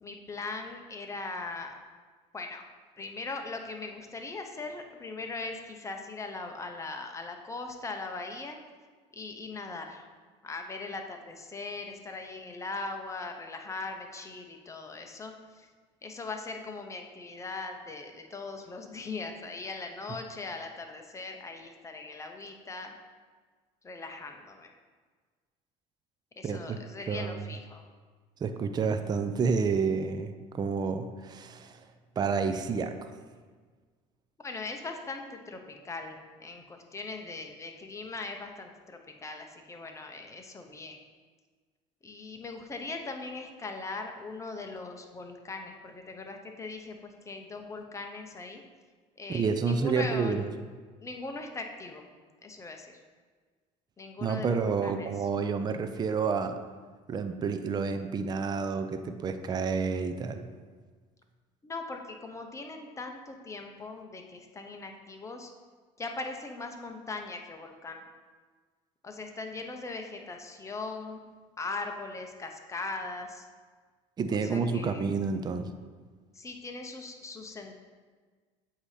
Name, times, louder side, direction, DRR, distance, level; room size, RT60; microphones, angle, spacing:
voice 1, 0.0-1.8 2.3-2.6 3.0-8.6 9.1-10.0 10.4-15.7 16.0-22.9 23.8-24.7 26.4-27.9 34.4-41.0 42.0-48.6 49.2-50.4 51.0-52.1 52.4-53.0 54.0-55.3 61.6-65.5 66.0-68.0 69.0-71.2 71.6-73.5 74.4-75.1 76.3-77.7, left 3 dB, 20° left, 4 dB, 0.8 m, -40 dB
voice 2, 26.4-26.8 27.1-27.4 28.4-31.8 32.2-33.1 49.3-50.5 54.2-56.6 57.1-60.5 74.2-75.7, right 5 dB, 30° right, 8 dB, 0.4 m, -29 dB
8.1 x 2.8 x 4.9 m, 1.5 s
supercardioid pair, 100°, 15 cm